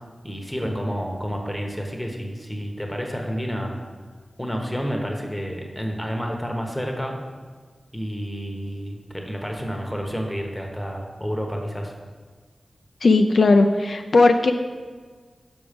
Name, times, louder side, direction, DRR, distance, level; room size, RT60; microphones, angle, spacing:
voice 1, 0.2-3.8 4.4-7.1 7.9-11.9, equal, 5° left, 1 dB, 1.0 m, -30 dB
voice 2, 13.0-14.5, left 3 dB, 65° left, 6 dB, 0.4 m, -17 dB
6.2 x 6.0 x 5.1 m, 1.5 s
wide cardioid pair, 110°, 0 cm